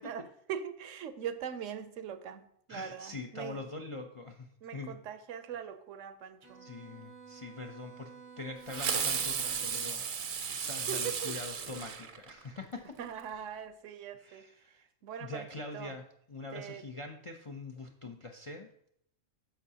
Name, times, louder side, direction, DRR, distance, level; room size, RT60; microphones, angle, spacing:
voice 1, 0.0-3.7 4.6-6.7 10.9-11.4 13.0-14.5 15.0-15.5 15.7-16.0 16.5-16.9 18.0-18.1, right 8 dB, 75° right, 1.0 m, -41 dB
voice 2, 2.7-4.9 6.6-8.1 8.4-13.0 14.2-14.8 15.2-18.7, left 3 dB, 45° left, 0.4 m, -44 dB
Bowed string instrument, 6.4-10.1, right 5 dB, 15° left, 0.8 m, -52 dB
Fireworks, 8.7-12.6, right 6 dB, 50° right, 0.7 m, -34 dB
10.0 x 7.0 x 2.8 m
omnidirectional pair, 1.3 m